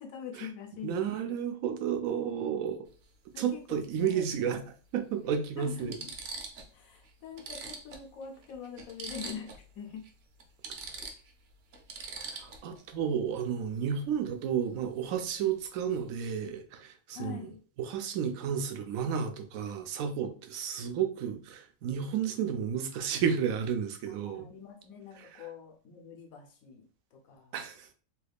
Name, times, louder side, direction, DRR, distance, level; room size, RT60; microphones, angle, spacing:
voice 1, 0.0-1.4 3.3-4.5 5.6-6.1 6.7-10.1 17.1-17.6 24.1-27.5, left 7 dB, 85° left, 1.2 m, -44 dB
voice 2, 0.8-2.9 3.4-4.6 4.9-6.0 12.2-17.5 17.8-24.5 25.2-25.3 27.5-27.9, right 8 dB, 90° right, 1.0 m, -32 dB
sound 1, 2.8-3.0 4.5-4.6 5.3-5.4 5.8-6.7 7.0-7.1 7.4-9.7 10.0-10.1 10.4-12.8 15.4-15.6 15.9-16.4, right 4 dB, 60° right, 0.8 m, -43 dB
3.0 x 2.3 x 3.4 m
omnidirectional pair, 1.4 m